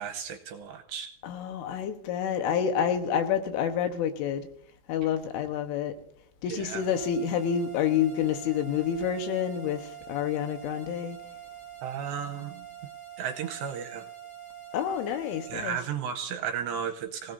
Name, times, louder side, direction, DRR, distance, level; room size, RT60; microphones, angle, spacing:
voice 1, 0.0-1.1 6.5-6.8 11.8-12.7 13.2-14.1 15.5-17.3, right 8 dB, 75° right, 2.7 m, -34 dB
voice 2, 1.2-4.5 4.9-5.9 6.4-11.2 14.7-15.8, left 8 dB, 80° left, 3.6 m, -28 dB
sound 1, 6.7-15.7, right 10 dB, 45° left, 5.4 m, -45 dB
25.5 x 16.5 x 2.7 m
omnidirectional pair, 5.7 m